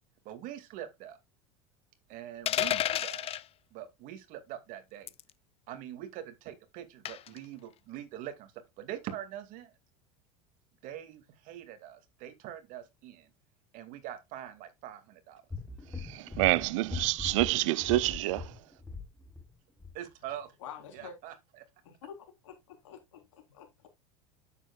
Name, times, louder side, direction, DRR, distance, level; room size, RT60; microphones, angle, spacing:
voice 1, 0.2-1.2 2.1-3.3 3.7-5.1 5.7-9.7 10.8-13.3 13.7-15.4 15.7-15.8 16.5-16.7 19.9-20.5 20.9-21.7, right 11 dB, 60° right, 2.3 m, -43 dB
sound 1, 2.5-3.4 5.1-5.3 7.1-7.4, left 12 dB, 40° left, 0.6 m, -30 dB
sound 2, 15.5-19.5 19.8-20.0, left 4 dB, 10° left, 1.2 m, -41 dB
voice 2, 16.0-18.5, right 19 dB, 75° right, 0.5 m, -28 dB
voice 3, 20.6-21.1 21.8-23.9, left 8 dB, 85° left, 3.9 m, -48 dB
9.7 x 7.6 x 2.4 m
hypercardioid pair, 95°, 16 cm